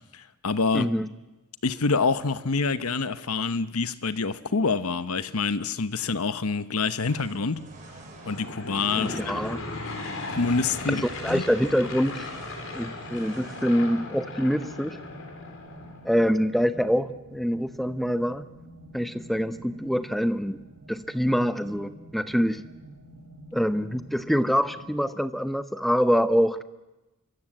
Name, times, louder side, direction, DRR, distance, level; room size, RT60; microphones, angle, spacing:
voice 1, 0.1-0.9 1.6-7.6 8.3-9.4 10.3-11.4, left 4 dB, 85° left, 13 dB, 1.0 m, -26 dB
voice 2, 0.7-1.1 9.0-9.6 10.9-12.3 12.7-15.0 16.0-18.5 18.9-20.6 20.9-22.6 23.5-26.6, equal, ahead, 11 dB, 0.9 m, -25 dB
sound 1, 7.0-13.6, right 3 dB, 35° right, 6.9 m, -49 dB
sound 2, 7.5-25.0, equal, 75° right, 2.4 m, -48 dB
Aircraft / Engine, 8.1-16.1, left 2 dB, 60° left, 4.1 m, -37 dB
26.0 x 24.0 x 7.9 m, 1.1 s
head